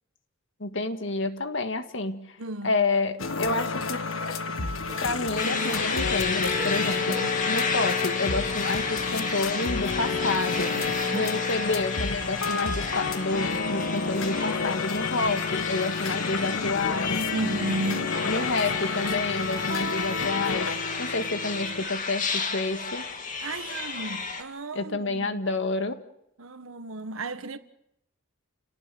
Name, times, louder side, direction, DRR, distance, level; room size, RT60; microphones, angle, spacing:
voice 1, 0.6-2.4 2.6-4.0 5.0-7.1 7.5-10.7 11.1-17.2 18.2-23.0 24.7-26.0, left 3 dB, 65° left, 1.8 m, -29 dB
voice 2, 2.4-2.8 7.1-7.3 10.7-11.3 17.3-18.1 23.4-25.4 26.4-27.6, right 1 dB, 80° right, 1.5 m, -34 dB
sound 1, 3.2-21.8, left 4 dB, 80° left, 1.4 m, -30 dB
sound 2, 4.3-11.3, right 3 dB, 20° right, 4.7 m, -45 dB
sound 3, 5.4-24.4, left 4 dB, 40° left, 2.6 m, -32 dB
29.5 x 18.5 x 7.7 m
head